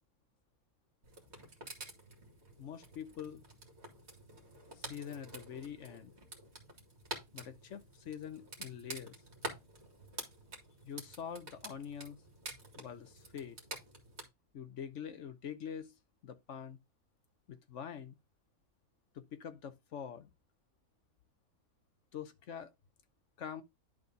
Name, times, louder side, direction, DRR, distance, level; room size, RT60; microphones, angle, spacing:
sound 1, 1.0-14.2, right 2 dB, 45° right, 2.4 m, -49 dB
voice 1, 2.6-3.4 4.8-6.1 7.3-9.2 10.8-12.2 12.8-13.6 14.5-15.9 16.2-16.8 17.5-18.2 19.1-20.3 22.1-22.7 23.4-23.6, left 8 dB, 60° left, 1.0 m, -45 dB
10.5 x 4.0 x 3.9 m
omnidirectional pair, 1.6 m